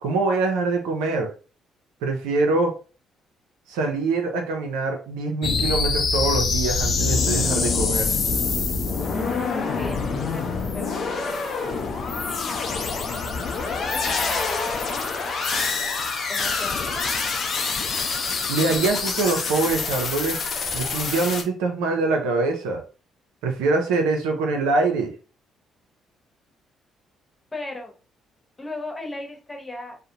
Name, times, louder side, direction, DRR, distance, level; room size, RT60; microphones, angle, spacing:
voice 1, 0.0-1.3 2.0-2.7 3.7-8.2 18.5-20.4 20.7-22.8 23.4-25.1, right 3 dB, 85° right, 3 dB, 0.5 m, -24 dB
sound 1, 5.4-21.4, left 4 dB, 55° left, 0.5 m, -25 dB
voice 2, 9.7-11.6 12.3-14.9 15.2-15.5 16.3-17.0 27.5-27.9 28.6-30.0, left 2 dB, 20° left, 2 dB, 1.0 m, -37 dB
2.4 x 2.1 x 2.8 m, 0.35 s
hypercardioid pair, 55°, 0 cm